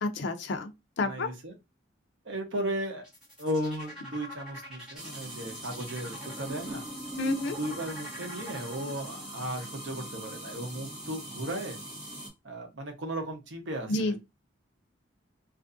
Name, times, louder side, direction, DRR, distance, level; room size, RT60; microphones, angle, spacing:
voice 1, 0.0-0.7 1.0-1.3 7.2-7.6 13.9-14.2, left 2 dB, 65° left, 0.4 m, -29 dB
voice 2, 1.0-1.5 2.2-3.1 3.4-6.9 7.5-11.8 12.4-14.2, right 1 dB, 70° right, 0.7 m, -35 dB
sound 1, 3.0-9.2, equal, 5° right, 1.2 m, -44 dB
sound 2, 5.0-12.3, right 1 dB, 20° right, 0.9 m, -42 dB
2.5 x 2.4 x 2.5 m
head